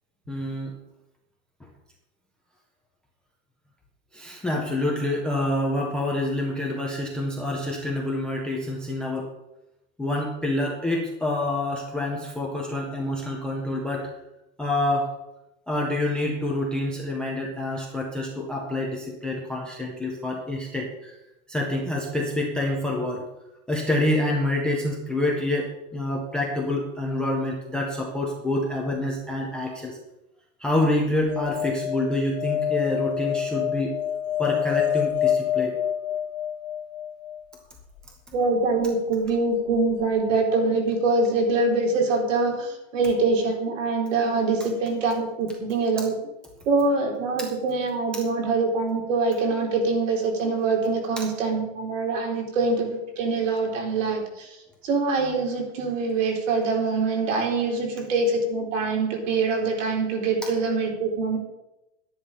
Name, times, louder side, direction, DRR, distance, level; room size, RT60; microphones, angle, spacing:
voice 1, 0.3-0.7 4.1-9.3 10.0-14.1 14.6-15.1 15.7-21.2 21.5-23.2 23.7-30.0 30.6-33.9 34.4-35.8 51.2-51.3, left 1 dB, ahead, -1 dB, 0.4 m, -27 dB
sound 1, 31.3-37.5 39.7-39.8 40.0-40.1, left 10 dB, 50° left, 1.4 m, -27 dB
voice 2, 38.3-46.1 46.7-54.5 54.8-61.4, right 3 dB, 70° right, 1 dB, 4.4 m, -24 dB
11.5 x 10.0 x 5.4 m, 0.92 s
supercardioid pair, 170°, 40 cm